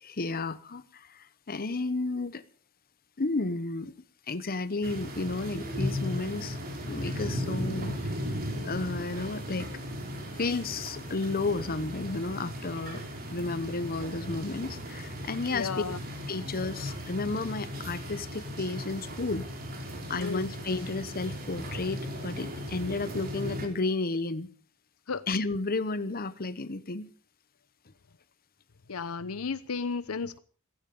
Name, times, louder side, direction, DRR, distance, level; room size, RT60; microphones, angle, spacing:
voice 1, 0.0-2.4 3.2-3.9 4.3-6.6 6.9-8.4 8.6-9.7 10.4-13.0 13.3-15.7 16.3-19.5 20.1-24.5 25.3-27.1, left 3 dB, 45° left, 1.0 m, -32 dB
sound 1, 4.8-23.7, equal, 45° right, 4.0 m, -37 dB
voice 2, 15.5-16.0 20.2-20.5 25.1-25.2 28.9-30.4, left 5 dB, 75° left, 0.8 m, -33 dB
16.0 x 15.5 x 5.4 m
head